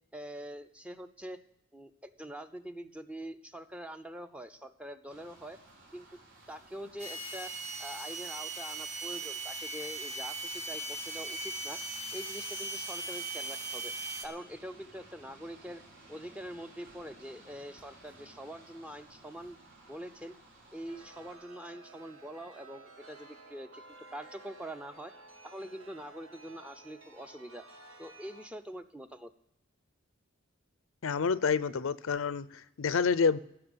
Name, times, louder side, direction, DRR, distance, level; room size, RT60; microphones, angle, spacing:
voice 1, 0.1-1.4 1.7-5.6 5.9-6.1 6.5-7.5 7.8-11.8 12.1-13.9 14.2-15.8 16.1-19.6 19.9-20.3 20.7-23.8 24.1-25.1 25.4-27.7 28.0-29.3, equal, 5° right, 0.6 m, -44 dB
sound 1, 5.1-21.3, right 2 dB, 55° right, 4.1 m, -57 dB
sound 2, 7.0-14.3, right 2 dB, 35° right, 1.6 m, -39 dB
Chime, 20.9-28.5, right 3 dB, 80° right, 2.1 m, -54 dB
voice 2, 31.0-33.4, left 5 dB, 85° left, 0.5 m, -28 dB
15.5 x 6.1 x 7.9 m
head